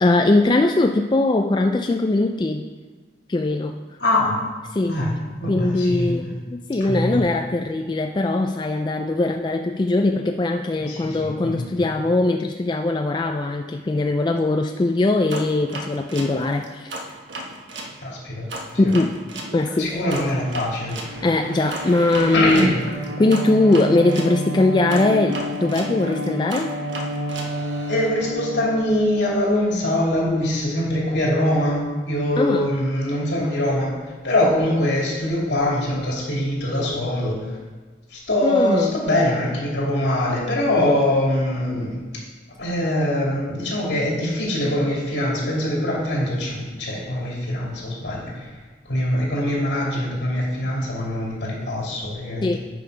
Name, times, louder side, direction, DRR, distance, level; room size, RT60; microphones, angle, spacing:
voice 1, 0.0-2.6 3.3-3.7 4.7-5.0 5.5-16.9 18.8-19.2 19.5-20.0 21.2-22.7 23.2-26.7 32.4-32.7 38.4-38.9 52.4-52.6, left 2 dB, 25° left, 4 dB, 0.3 m, -21 dB
voice 2, 4.0-4.4 4.9-5.1 5.4-6.4 6.9-7.1 10.9-11.7 18.0-18.5 19.8-21.0 22.3-22.8 27.9-31.8 32.1-33.9 34.2-37.4 38.1-42.0 42.6-48.3 48.9-52.5, left 1 dB, 75° left, -4 dB, 2.7 m, -23 dB
sound 1, 15.3-17.9 18.5-24.3 24.9-28.1, right 1 dB, 90° right, 1.2 m, -35 dB
Bowed string instrument, 21.0-29.4, equal, 55° right, 1.1 m, -30 dB
9.3 x 5.4 x 4.9 m, 1.4 s
head